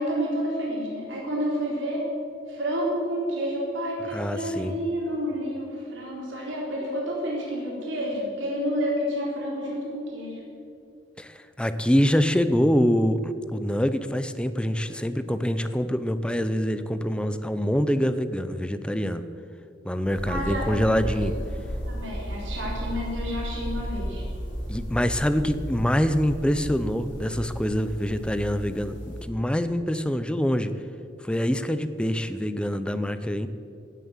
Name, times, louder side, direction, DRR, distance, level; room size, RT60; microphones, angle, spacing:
voice 1, 0.0-2.0 2.5-10.4 20.3-21.2 21.9-24.2, equal, 90° right, -4 dB, 3.9 m, -30 dB
voice 2, 4.1-4.8 11.2-19.2 19.8-21.3 24.7-30.7 31.2-33.5, equal, 5° left, 11 dB, 0.5 m, -25 dB
sound 1, 20.0-29.2, equal, 80° left, 4.0 m, -34 dB
17.0 x 7.4 x 7.3 m, 2.5 s
head